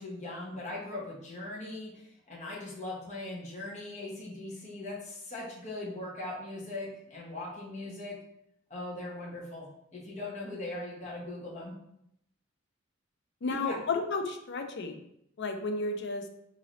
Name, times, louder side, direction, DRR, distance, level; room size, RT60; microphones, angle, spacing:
voice 1, 0.0-8.1 8.7-11.7 13.5-13.8, left 2 dB, 35° left, -5 dB, 1.1 m, -40 dB
voice 2, 13.4-15.0 15.4-16.2, left 3 dB, 60° left, 6 dB, 0.5 m, -32 dB
3.8 x 2.7 x 3.1 m, 0.75 s
head